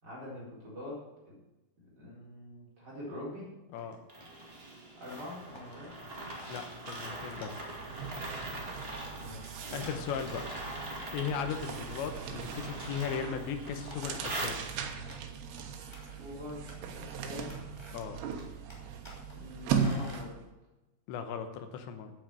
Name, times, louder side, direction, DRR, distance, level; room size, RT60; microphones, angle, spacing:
voice 1, 0.0-1.0 1.3-1.4 1.8-3.5 5.0-5.9 9.1-9.4 15.9-17.6 19.3-20.4, left 1 dB, 25° right, -6 dB, 4.4 m, -44 dB
sound 1, 3.8-4.5 5.1-5.8 6.3-6.7 7.0-7.8 8.2-8.5 8.8-9.1 9.7-9.9 10.2-10.3 11.0-12.1 12.8-13.2 13.7-15.3 15.6-16.3 16.7-17.1 17.4-18.1 18.4-19.3 19.7-20.2, left 1 dB, 10° left, 1.7 m, -52 dB
sound 2, 4.1-15.1, right 1 dB, 55° right, 0.6 m, -42 dB
voice 2, 6.5-7.6 9.7-10.4 11.1-14.6 17.9-18.2 21.1-22.1, left 7 dB, 80° left, 8 dB, 3.2 m, -37 dB
sound 3, 6.5-6.7 7.0-20.5, right 6 dB, 75° right, 3.2 m, -39 dB
9.0 x 8.8 x 8.9 m, 1.0 s
omnidirectional pair, 5.2 m